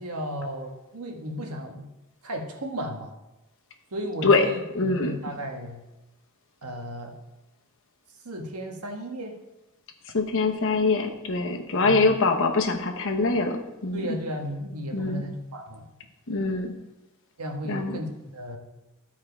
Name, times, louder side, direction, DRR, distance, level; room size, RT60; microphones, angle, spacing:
voice 1, 0.0-1.9 2.2-3.1 3.9-5.8 6.6-7.1 8.2-9.3 11.8-12.1 13.9-15.9 17.4-18.6, equal, 85° right, 2 dB, 1.5 m, -34 dB
voice 2, 4.7-5.2 10.1-14.1 14.9-15.2 16.3-16.7 17.7-18.0, left 3 dB, 60° left, 3 dB, 1.1 m, -24 dB
13.5 x 4.7 x 4.6 m, 0.99 s
head